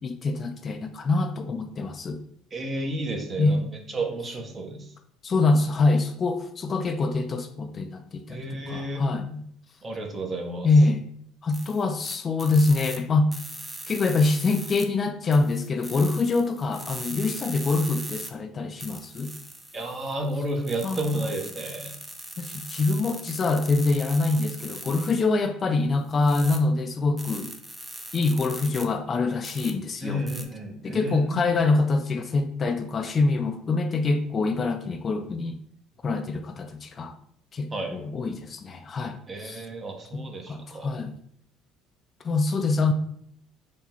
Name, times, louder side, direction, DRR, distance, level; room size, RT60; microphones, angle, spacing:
voice 1, 0.0-2.2 3.4-3.6 5.2-9.4 10.6-11.0 11.4-13.3 13.9-19.3 20.8-21.2 22.4-27.5 28.1-30.2 30.8-35.6 36.0-37.1 37.5-39.6 40.1-41.2 42.2-42.9, left 3 dB, 35° left, 7 dB, 0.4 m, -25 dB
voice 2, 2.5-4.9 8.3-9.1 9.8-10.7 19.7-21.9 30.0-31.6 37.7-37.9 39.3-40.9, right 1 dB, 35° right, 3 dB, 0.9 m, -31 dB
sound 1, 11.5-13.0 13.3-14.9 15.3-18.3 18.8-25.3 26.1-26.6 27.2-28.9 29.4-29.7 30.3-30.5, right 1 dB, 10° right, 0.6 m, -40 dB
3.6 x 2.2 x 4.4 m, 0.66 s
supercardioid pair, 80°, 0 cm